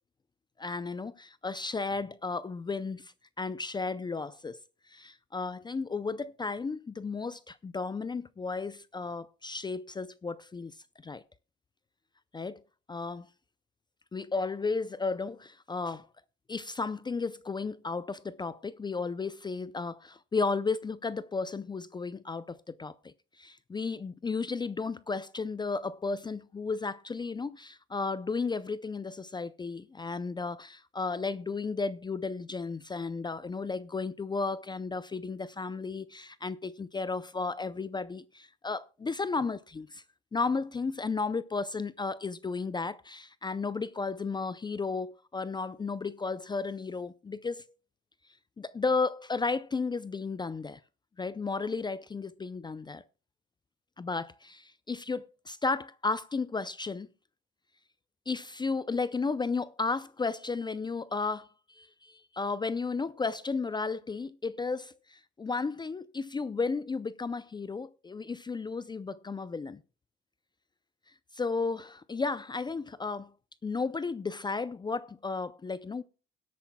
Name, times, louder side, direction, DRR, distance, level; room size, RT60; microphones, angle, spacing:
voice 1, 0.6-4.6 4.9-10.8 11.0-11.2 12.3-12.6 12.9-13.3 14.1-16.1 16.5-40.0 40.3-47.6 48.6-50.8 51.2-53.0 54.0-57.1 58.3-69.8 71.3-73.3 73.6-76.0, left 4 dB, 20° left, 0.4 m, -34 dB
24.5 x 8.4 x 2.2 m
cardioid pair, 90°, 20 cm